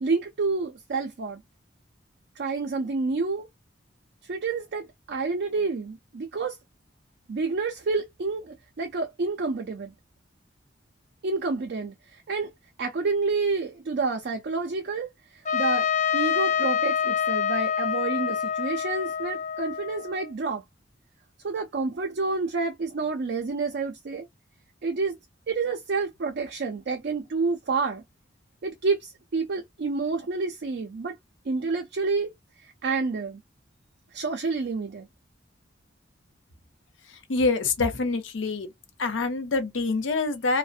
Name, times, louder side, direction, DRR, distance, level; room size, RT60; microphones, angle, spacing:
voice 1, 0.0-1.4 2.4-3.5 4.2-6.6 7.3-9.9 11.2-12.5 12.8-20.6 21.4-24.3 24.8-25.2 25.5-28.0 28.6-31.2 31.4-32.3 32.6-33.4 34.1-35.1, right 4 dB, 60° right, 0.4 m, -29 dB
Trumpet, 15.5-20.3, left 8 dB, 40° left, 0.8 m, -26 dB
voice 2, 37.3-38.7 39.0-40.6, left 3 dB, 85° left, 0.6 m, -25 dB
2.5 x 2.0 x 2.4 m
head